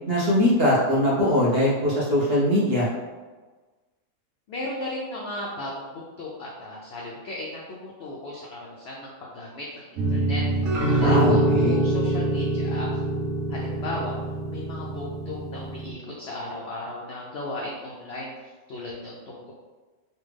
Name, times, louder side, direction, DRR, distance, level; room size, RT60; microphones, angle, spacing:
voice 1, 0.1-2.9 11.0-11.8, left 1 dB, 50° right, -6 dB, 0.8 m, -21 dB
voice 2, 4.5-10.4 10.9-13.0 13.5-14.2 14.5-19.5, left 2 dB, 75° left, -3 dB, 0.5 m, -36 dB
sound 1, 10.0-15.9, right 2 dB, 70° right, 1.1 m, -24 dB
3.3 x 2.4 x 3.2 m, 1.3 s
omnidirectional pair, 1.6 m